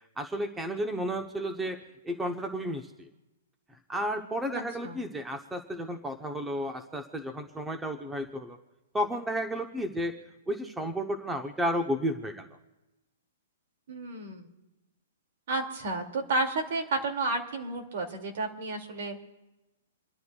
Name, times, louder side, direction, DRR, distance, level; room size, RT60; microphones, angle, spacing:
voice 1, 0.2-1.8 2.0-3.1 3.7-8.6 8.9-10.1 10.5-12.5, equal, 5° right, 5 dB, 0.8 m, -32 dB
voice 2, 4.5-5.0 13.9-14.5 15.5-19.2, right 2 dB, 55° right, 4 dB, 2.3 m, -32 dB
28.5 x 12.0 x 2.3 m, 1.0 s
hypercardioid pair, 160°, 0 cm